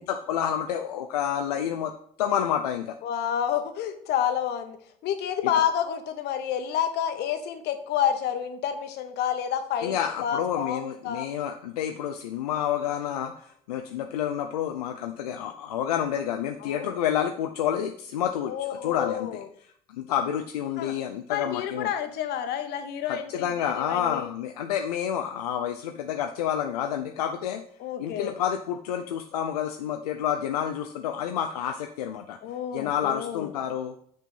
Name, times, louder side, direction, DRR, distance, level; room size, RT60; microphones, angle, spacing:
voice 1, 0.0-1.9 2.2-3.0 9.8-19.4 19.9-21.9 23.1-27.6 28.0-32.4 32.7-33.9, left 9 dB, 80° left, 5 dB, 0.5 m, -29 dB
voice 2, 3.0-4.8 5.0-11.3 16.6-17.0 18.5-19.5 20.8-20.9 21.3-24.3 27.8-28.3 32.4-33.5, left 9 dB, 60° left, 8 dB, 1.0 m, -29 dB
6.3 x 4.4 x 5.3 m, 0.62 s
hypercardioid pair, 55°, 19 cm